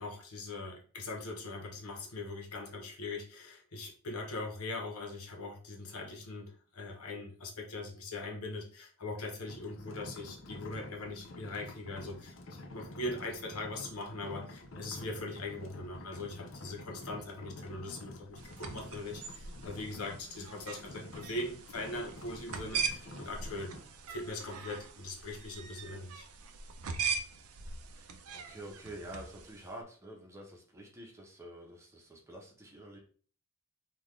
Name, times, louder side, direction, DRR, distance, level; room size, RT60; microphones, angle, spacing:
voice 1, 0.0-23.7 24.1-26.3, left 2 dB, 85° left, 1 dB, 1.0 m, -41 dB
sound 1, 9.5-23.8, left 1 dB, 60° left, 0.6 m, -48 dB
sound 2, 18.4-29.7, right 5 dB, 80° right, 0.5 m, -41 dB
voice 2, 28.0-33.0, right 1 dB, 10° right, -1 dB, 0.8 m, -48 dB
3.9 x 2.4 x 3.2 m, 0.42 s
head